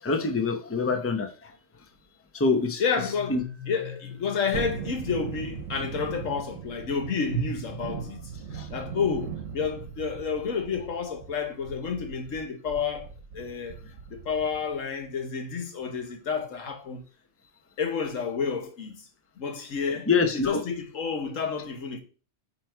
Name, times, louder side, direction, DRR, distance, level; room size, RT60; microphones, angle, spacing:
voice 1, 0.0-1.5 2.3-2.8 3.3-3.4 8.5-8.7 20.1-20.6, left 4 dB, 15° left, 0.7 m, -25 dB
voice 2, 2.8-3.4 3.7-8.3 8.7-13.1 13.3-13.8 14.1-17.0 17.8-19.0 19.4-22.0, left 5 dB, 85° left, 1.5 m, -30 dB
sound 1, 3.0-5.9, left 8 dB, 35° right, 1.2 m, -43 dB
Thunderstorm, 4.5-14.8 15.1-15.2, right 6 dB, 90° right, 1.2 m, -39 dB
9.1 x 3.3 x 4.6 m
omnidirectional pair, 1.3 m